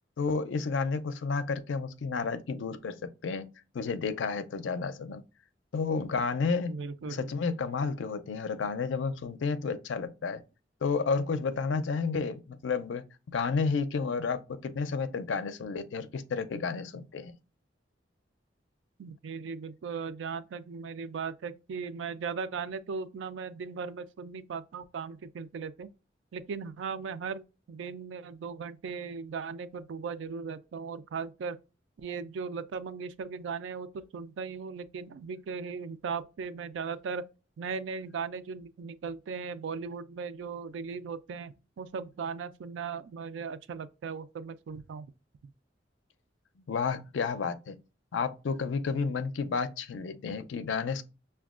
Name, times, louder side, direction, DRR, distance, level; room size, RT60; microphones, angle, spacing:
voice 1, 0.2-3.0 3.2-3.4 3.7-5.2 5.7-6.7 7.1-10.4 10.8-17.3 46.7-47.7 48.1-51.0, left 5 dB, 80° left, 0.4 m, -31 dB
voice 2, 6.6-7.3 19.0-25.9 26.3-31.6 32.0-37.2 37.6-45.1, right 5 dB, 80° right, 0.3 m, -38 dB
5.8 x 2.2 x 2.4 m
head